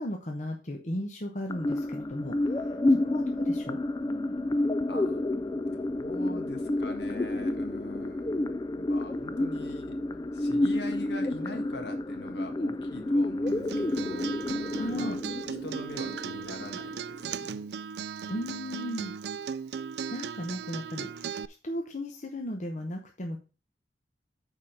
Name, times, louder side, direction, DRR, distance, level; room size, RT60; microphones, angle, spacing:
voice 1, 0.0-3.8 14.7-15.2 18.3-19.1 20.1-21.4 21.6-23.4, left 1 dB, 45° left, 2 dB, 1.0 m, -36 dB
sound 1, 1.5-17.5, left 1 dB, 20° left, 0.3 m, -30 dB
voice 2, 4.9-5.3 5.7-8.4 8.8-9.9 10.3-14.3 14.9-15.2 15.6-17.0 17.2-17.6, left 1 dB, 70° left, 4 dB, 1.8 m, -43 dB
Acoustic guitar, 13.5-21.5, right 6 dB, 65° right, 0.4 m, -37 dB
6.6 x 5.0 x 5.8 m, 0.33 s
head